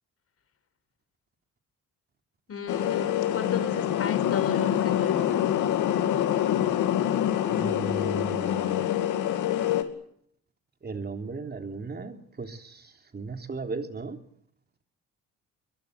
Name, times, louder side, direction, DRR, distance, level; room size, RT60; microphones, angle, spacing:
voice 1, 2.5-5.5, left 6 dB, 50° left, 9 dB, 5.8 m, -34 dB
sound 1, 2.7-9.8, left 11 dB, 85° left, 2.5 m, -26 dB
voice 2, 7.5-8.8 10.8-14.2, right 4 dB, 35° right, 6 dB, 3.3 m, -36 dB
23.0 x 22.0 x 8.3 m, 0.68 s
cardioid pair, 90°, 30 cm